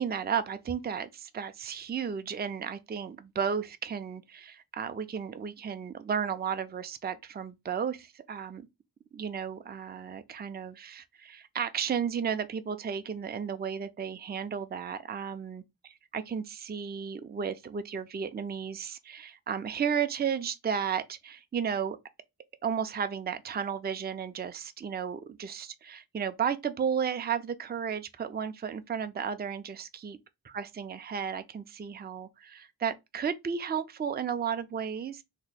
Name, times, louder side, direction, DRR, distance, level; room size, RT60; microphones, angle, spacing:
voice 1, 0.0-8.7 9.1-15.6 16.1-22.0 22.6-30.2 30.5-35.2, right 7 dB, 25° right, 0.4 m, -33 dB
2.9 x 2.1 x 4.0 m
wide cardioid pair, 45°, 42 cm